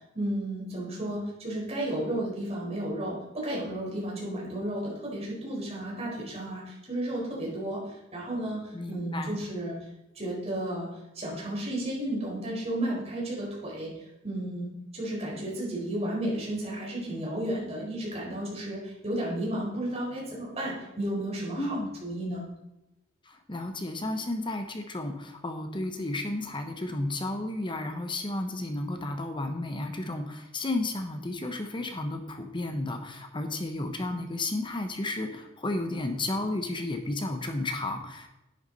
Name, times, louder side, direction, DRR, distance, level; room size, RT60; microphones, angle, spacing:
voice 1, 0.1-7.8 8.1-8.6 8.9-9.8 10.2-10.9 11.1-13.9 14.2-22.4, right 1 dB, 30° right, -4 dB, 4.5 m, -33 dB
voice 2, 8.7-9.4 21.6-21.9 23.3-38.3, left 2 dB, 25° left, 6 dB, 0.9 m, -32 dB
11.0 x 9.6 x 4.1 m, 0.94 s
head